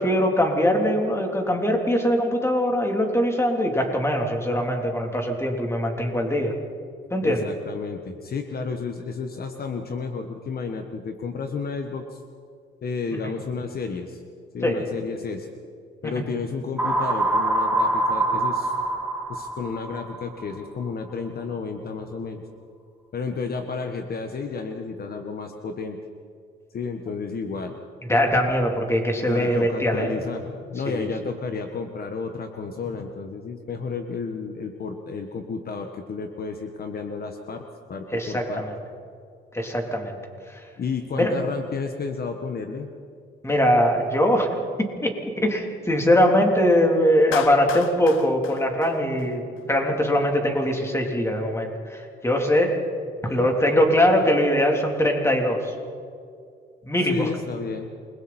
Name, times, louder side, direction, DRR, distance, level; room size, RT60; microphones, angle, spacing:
voice 1, 0.0-6.5 7.1-7.4 14.6-14.8 16.0-16.1 28.1-30.1 30.9-31.1 38.1-38.7 39.5-40.2 40.5-40.6 41.2-41.3 43.4-44.5 44.8-52.8 53.3-55.7 56.8-57.3, equal, 15° left, 1 dB, 3.6 m, -22 dB
voice 2, 7.2-12.2 12.8-14.2 14.5-15.5 16.0-18.7 19.3-22.4 23.1-26.0 26.7-27.8 29.2-38.6 40.8-42.9 53.2-53.4 57.0-57.9, left 4 dB, 50° left, 5 dB, 1.5 m, -32 dB
sound 1, 16.8-20.6, right 2 dB, 5° right, 2.6 m, -24 dB
Clapping, 47.3-49.6, left 12 dB, 90° left, 0.8 m, -35 dB
28.0 x 21.5 x 4.4 m, 2.3 s
cardioid pair, 90°, 20 cm